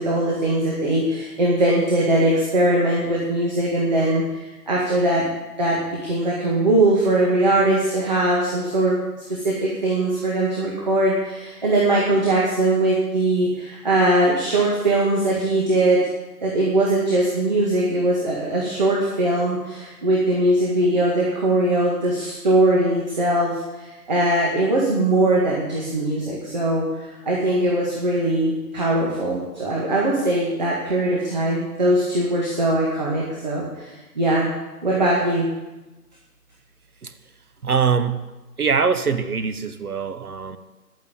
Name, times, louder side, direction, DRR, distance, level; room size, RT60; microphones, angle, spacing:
voice 1, 0.0-5.3 5.6-9.0 9.3-16.0 16.4-34.5 34.8-35.5, right 1 dB, 25° right, -4 dB, 2.0 m, -21 dB
voice 2, 37.6-38.2 38.6-40.6, right 6 dB, 65° right, 11 dB, 1.2 m, -22 dB
11.0 x 9.2 x 8.8 m, 1.1 s
hypercardioid pair, 175°, 48 cm